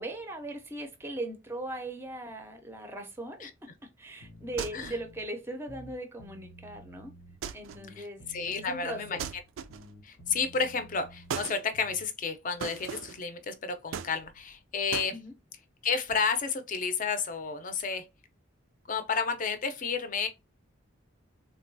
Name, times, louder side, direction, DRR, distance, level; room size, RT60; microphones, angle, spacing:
voice 1, 0.0-7.1 7.5-8.2 8.5-9.2 15.1-15.3, right 1 dB, 10° right, 0.5 m, -39 dB
sound 1, 4.2-5.3 5.6-7.4 7.7-9.4 9.7-12.1, left 1 dB, 90° left, 0.8 m, -51 dB
sound 2, 4.6-5.1 7.4-7.9 9.2-10.0 11.3-11.6 12.6-13.2 13.9-14.5 14.9-15.1, right 7 dB, 80° right, 0.3 m, -38 dB
voice 2, 8.0-9.2 10.0-15.2 15.8-18.0 18.9-20.3, left 5 dB, 40° left, 0.5 m, -31 dB
3.7 x 2.2 x 2.6 m
head